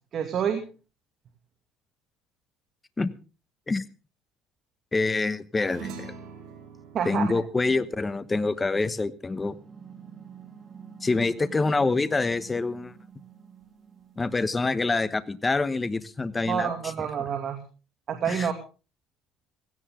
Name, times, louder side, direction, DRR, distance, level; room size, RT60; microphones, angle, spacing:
voice 1, 0.1-0.6 6.9-7.3 16.5-17.6 18.1-18.5, right 8 dB, 45° right, 5 dB, 2.4 m, -28 dB
voice 2, 4.9-6.1 7.0-9.6 11.0-12.9 14.2-16.7 18.3-18.5, left 3 dB, 15° left, 13 dB, 1.2 m, -26 dB
sound 1, 5.6-10.3, right 5 dB, 70° right, 4.6 m, -45 dB
sound 2, 9.3-14.9, right 7 dB, 25° right, 2.8 m, -48 dB
17.0 x 16.5 x 3.7 m, 0.35 s
cardioid pair, 120°, 0 cm